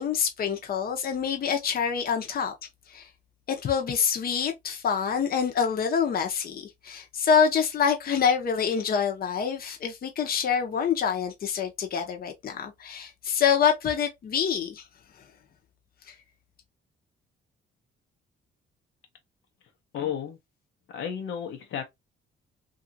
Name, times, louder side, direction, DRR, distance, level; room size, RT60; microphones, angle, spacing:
voice 1, 0.0-2.5 2.9-3.1 3.5-14.8 16.1-16.2, left 7 dB, 50° left, 0.8 m, -26 dB
voice 2, 19.9-20.4 20.9-21.8, left 8 dB, 80° left, 0.8 m, -32 dB
2.8 x 2.5 x 2.6 m
cardioid pair, 90°, 20 cm